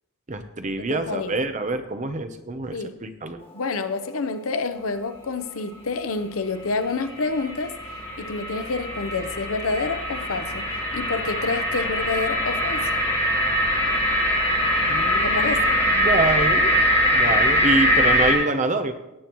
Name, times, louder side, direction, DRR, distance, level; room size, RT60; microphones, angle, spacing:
voice 1, 0.3-3.4 14.9-15.6 15.9-16.7 17.1-18.9, right 2 dB, 35° right, 8 dB, 0.8 m, -26 dB
voice 2, 0.8-1.3 2.7-2.9 3.5-7.7 8.2-10.7 10.9-12.9 15.2-15.8, left 3 dB, 85° left, 10 dB, 0.8 m, -28 dB
sound 1, 6.7-18.3, equal, 25° left, 2.2 m, -22 dB
17.5 x 8.5 x 3.1 m, 0.94 s
head